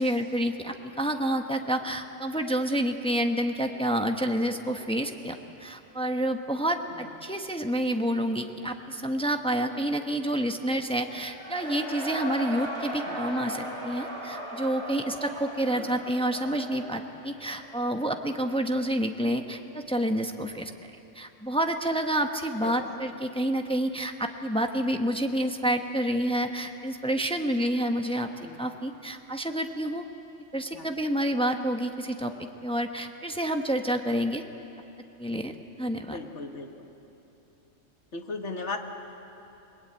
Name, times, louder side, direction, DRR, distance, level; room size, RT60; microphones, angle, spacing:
voice 1, 0.0-28.3 28.6-30.0 30.5-34.4 35.2-35.5 35.8-36.2, right 1 dB, 5° left, 5 dB, 1.0 m, -29 dB
Cheering / Crowd, 11.1-17.9, right 1 dB, 25° right, 6.1 m, -37 dB
voice 2, 22.6-23.0 28.4-28.6 30.7-30.9 36.1-36.9 38.1-38.8, left 3 dB, 70° left, 5 dB, 2.0 m, -37 dB
29.5 x 20.0 x 8.9 m, 3.0 s
omnidirectional pair, 1.2 m